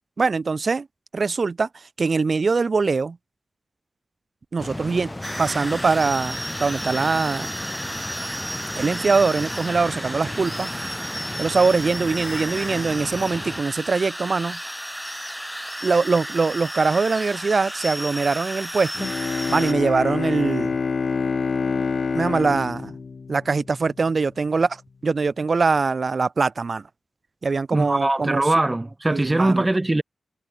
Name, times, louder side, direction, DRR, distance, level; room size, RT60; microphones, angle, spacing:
voice 1, 0.2-0.9 1.1-3.2 4.5-5.1 5.4-7.5 8.7-10.7 11.4-14.6 15.8-19.1 19.5-20.7 22.1-22.9 23.3-26.8 27.4-28.4 29.1-29.7, right 4 dB, 55° right, 3.0 m, -22 dB
sound 1, 4.6-13.6, left 1 dB, 15° left, 3.0 m, -35 dB
sound 2, 5.2-19.7, equal, ahead, 2.3 m, -33 dB
Bowed string instrument, 18.9-23.9, left 5 dB, 60° left, 6.4 m, -26 dB
voice 2, 27.7-30.0, right 2 dB, 20° right, 1.3 m, -21 dB
wide cardioid pair, 75°, 0 cm